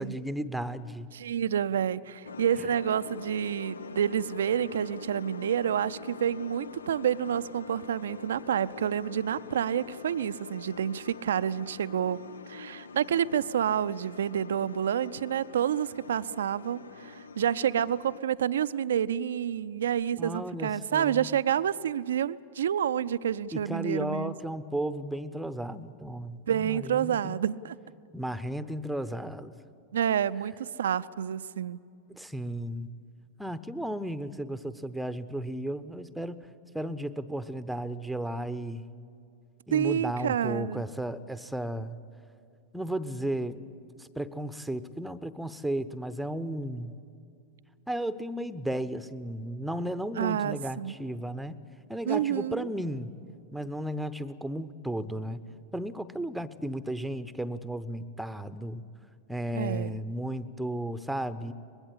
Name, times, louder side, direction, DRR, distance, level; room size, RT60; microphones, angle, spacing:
voice 1, 0.0-1.1 2.6-2.7 20.2-21.3 23.5-27.4 28.1-29.5 32.1-32.9 33.4-36.5 36.7-38.8 39.7-42.0 42.7-43.6 44.0-47.0 47.9-51.6 51.9-53.1 53.5-55.4 55.7-58.8 59.3-61.5, right 1 dB, ahead, 14 dB, 0.9 m, -34 dB
voice 2, 1.1-12.2 12.5-24.3 26.5-27.8 29.9-31.8 39.7-40.8 50.2-51.0 52.1-52.7 59.5-60.0, right 9 dB, 65° right, 15 dB, 0.5 m, -29 dB
sound 1, 2.2-18.2, left 5 dB, 70° left, 0.5 m, -44 dB
23.5 x 21.0 x 8.5 m, 2.5 s
figure-of-eight pair, 90°, 0 cm